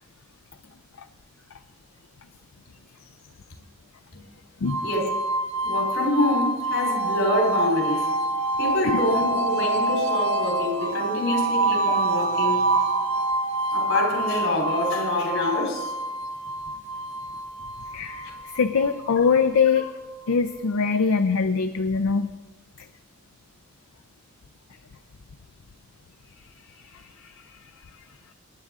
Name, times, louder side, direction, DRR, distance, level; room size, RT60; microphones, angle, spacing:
sound 1, 4.7-19.6, right 2 dB, 70° right, 1.8 m, -26 dB
voice 1, 5.6-8.1 8.6-12.7 13.7-15.9 19.8-19.9, left 1 dB, 70° left, 1 dB, 3.4 m, -26 dB
voice 2, 17.9-19.9 20.3-22.3 26.7-27.6, left 5 dB, 90° left, 9 dB, 0.5 m, -23 dB
20.0 x 9.9 x 3.6 m, 1.2 s
head